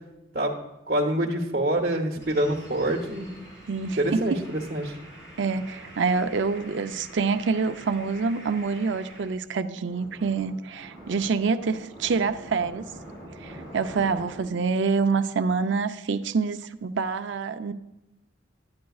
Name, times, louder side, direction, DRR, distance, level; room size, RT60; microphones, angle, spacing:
voice 1, 0.9-3.3 4.0-4.9, right 1 dB, 50° right, -1 dB, 0.9 m, -26 dB
sound 1, 2.2-9.4 9.8-14.6, right 1 dB, 20° left, 2.7 m, -45 dB
voice 2, 3.7-4.4 5.4-12.9 13.4-17.7, right 4 dB, 65° right, 10 dB, 0.4 m, -26 dB
11.5 x 9.5 x 2.3 m, 0.98 s
head